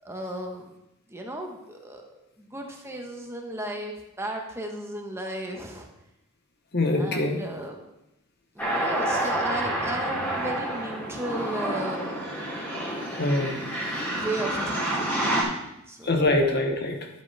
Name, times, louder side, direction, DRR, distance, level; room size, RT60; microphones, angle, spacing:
voice 1, 0.0-0.7 1.1-2.0 2.4-5.9 6.9-7.8 8.5-12.1 14.0-15.6 15.9-16.1, right 1 dB, 10° right, 1 dB, 1.1 m, -35 dB
voice 2, 6.7-7.4 13.1-13.6 16.0-17.1, left 2 dB, 50° left, 4 dB, 1.1 m, -24 dB
sound 1, 8.6-15.4, right 1 dB, 10° left, 2.6 m, -29 dB
11.5 x 7.6 x 3.4 m, 0.87 s
head